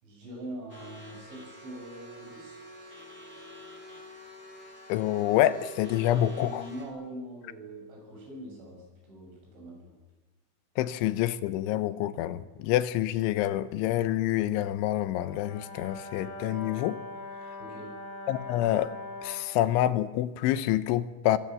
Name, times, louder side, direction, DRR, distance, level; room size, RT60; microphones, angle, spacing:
voice 1, 0.0-2.6 6.1-10.0 17.6-17.9, right 1 dB, 80° right, 0 dB, 10.0 m, -43 dB
sound 1, 0.7-6.9, right 2 dB, 10° right, 4.8 m, -47 dB
voice 2, 4.9-6.7 10.8-17.0 18.3-18.9 19.2-21.4, left 13 dB, 90° left, 14 dB, 3.4 m, -27 dB
Brass instrument, 15.1-19.5, left 2 dB, 65° left, 7.7 m, -42 dB
25.5 x 23.0 x 7.7 m, 1.2 s
omnidirectional pair, 5.3 m